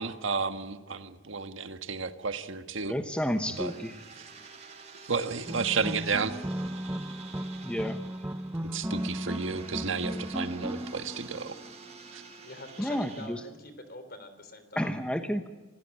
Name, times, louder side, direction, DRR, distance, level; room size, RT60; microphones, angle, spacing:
voice 1, 0.0-2.9 3.5-3.7 5.1-6.3 8.7-11.6 12.1-12.2, right 5 dB, 75° right, 1.5 m, -32 dB
voice 2, 2.9-4.0 7.6-8.0 12.8-13.4 14.8-15.5, equal, 5° left, 1.1 m, -31 dB
sound 1, 3.0-13.3, right 5 dB, 35° right, 4.8 m, -49 dB
sound 2, 5.5-12.1, equal, 10° right, 0.7 m, -36 dB
voice 3, 12.4-14.9, left 1 dB, 50° left, 3.4 m, -45 dB
26.5 x 16.5 x 8.9 m
head